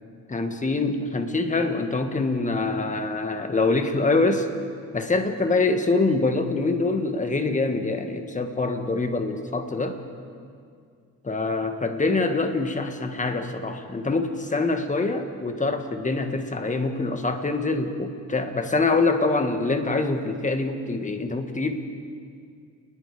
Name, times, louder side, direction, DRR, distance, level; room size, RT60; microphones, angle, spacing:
voice 1, 0.3-4.5 4.9-10.0 11.2-21.8, left 3 dB, 25° left, 6 dB, 1.9 m, -25 dB
29.0 x 20.5 x 5.0 m, 2.3 s
cardioid pair, 110°, 32 cm